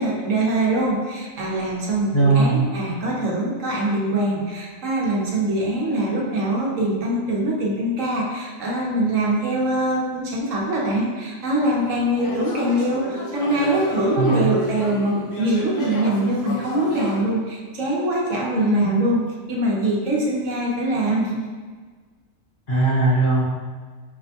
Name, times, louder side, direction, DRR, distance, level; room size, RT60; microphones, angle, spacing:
voice 1, 0.0-19.2 19.5-21.4, right 1 dB, 70° right, -3 dB, 1.1 m, -23 dB
voice 2, 2.1-2.6 14.2-14.4 18.5-18.9 22.7-23.4, right 2 dB, 45° left, -7 dB, 1.1 m, -19 dB
sound 1, 11.5-17.2, left 1 dB, 65° left, 1.1 m, -33 dB
5.8 x 2.1 x 2.8 m, 1.5 s
omnidirectional pair, 1.4 m